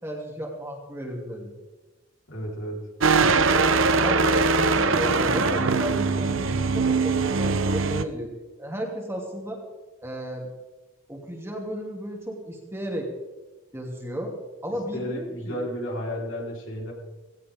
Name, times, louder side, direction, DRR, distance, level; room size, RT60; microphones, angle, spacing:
voice 1, 0.0-1.5 4.0-8.3 8.6-9.6 10.0-10.5 11.1-13.1 13.7-14.3 14.6-15.5, equal, 15° right, -1 dB, 2.8 m, -34 dB
voice 2, 2.3-2.9 14.9-16.9, equal, 75° left, -2 dB, 4.3 m, -32 dB
sound 1, 3.0-8.0, right 4 dB, 80° right, 0.9 m, -21 dB
18.0 x 17.5 x 3.7 m, 1.2 s
head